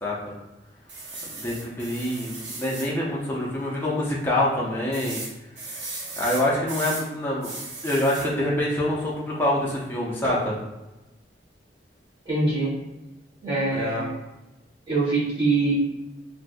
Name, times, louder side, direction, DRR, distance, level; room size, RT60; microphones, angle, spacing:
voice 1, 0.0-0.3 1.3-5.2 6.2-7.5 7.8-10.6 13.7-14.1, left 1 dB, 10° left, -5 dB, 0.5 m, -26 dB
sound 1, 0.9-2.9 3.4-3.6 3.8-3.9 4.9-7.1 7.4-8.3 10.2-10.5, right 2 dB, 70° right, 0.8 m, -36 dB
voice 2, 12.2-12.7 13.4-14.1 14.9-15.7, right 3 dB, 25° right, -9 dB, 1.5 m, -23 dB
3.4 x 2.6 x 2.5 m, 1.0 s
head